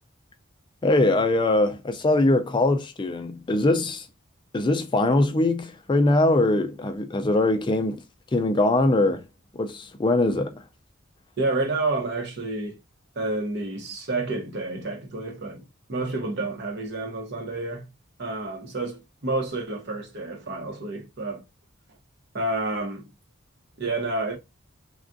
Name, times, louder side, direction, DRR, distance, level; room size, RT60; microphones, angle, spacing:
voice 1, 0.8-4.0 4.5-8.0 8.3-9.2 9.5-10.6, left 2 dB, 25° left, 0.4 m, -22 dB
voice 2, 11.4-12.8 13.2-17.9 18.2-21.4 22.3-23.1 23.8-24.4, right 2 dB, 55° right, 0.8 m, -29 dB
3.4 x 2.3 x 2.5 m
head